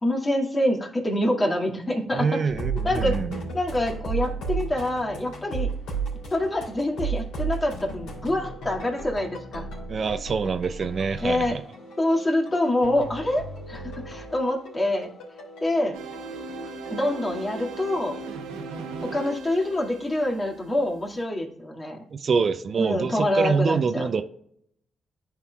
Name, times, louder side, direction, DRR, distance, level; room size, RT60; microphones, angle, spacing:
voice 1, 0.0-2.3 2.8-3.2 3.5-5.7 6.3-9.6 11.2-11.5 12.0-15.1 15.6-15.9 16.9-18.2 19.0-22.0 22.8-24.1, left 1 dB, 30° left, 2.0 m, -26 dB
voice 2, 2.1-3.4 9.9-11.6 22.1-24.2, right 5 dB, 50° right, 0.5 m, -25 dB
sound 1, 2.5-19.0, right 4 dB, 80° left, 3.0 m, -35 dB
sound 2, 15.9-21.2, right 3 dB, 90° right, 0.9 m, -38 dB
11.5 x 4.5 x 2.3 m
supercardioid pair, 50°, 0 cm